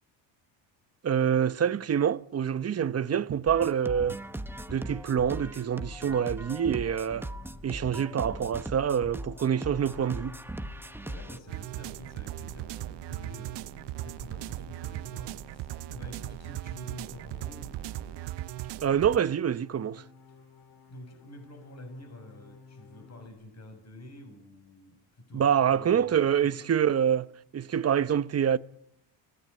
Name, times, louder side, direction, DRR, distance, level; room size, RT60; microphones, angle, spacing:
voice 1, 1.0-4.2 4.7-7.3 7.6-10.4 18.8-20.0 25.3-27.3 27.5-28.6, right 8 dB, 30° right, 1.0 m, -26 dB
sound 1, 3.5-11.4, right 1 dB, 5° right, 1.1 m, -39 dB
sound 2, 7.0-23.3, left 4 dB, 70° left, 4.0 m, -56 dB
voice 2, 11.0-18.2 20.3-20.4 20.9-26.6, left 1 dB, 30° left, 6.7 m, -48 dB
sound 3, 11.5-19.2, right 14 dB, 60° right, 0.9 m, -38 dB
26.5 x 16.5 x 8.8 m
cardioid pair, 95°, 49 cm